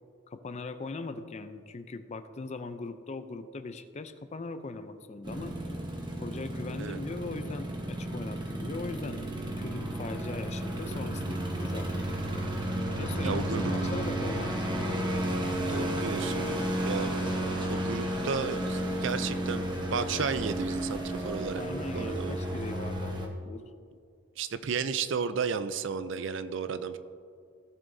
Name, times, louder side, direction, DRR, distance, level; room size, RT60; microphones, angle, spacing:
voice 1, 0.3-5.6 6.2-9.2 9.6-12.0 13.0-14.5 21.6-23.6, left 3 dB, 35° left, 10 dB, 0.4 m, -39 dB
sound 1, 5.2-23.3, right 1 dB, 20° right, 1.0 m, -32 dB
voice 2, 13.2-13.7 15.7-16.5 16.8-17.2 17.7-21.6 21.9-22.4 24.4-27.0, right 5 dB, 65° right, 12 dB, 0.5 m, -33 dB
16.5 x 7.2 x 2.7 m, 2.3 s
head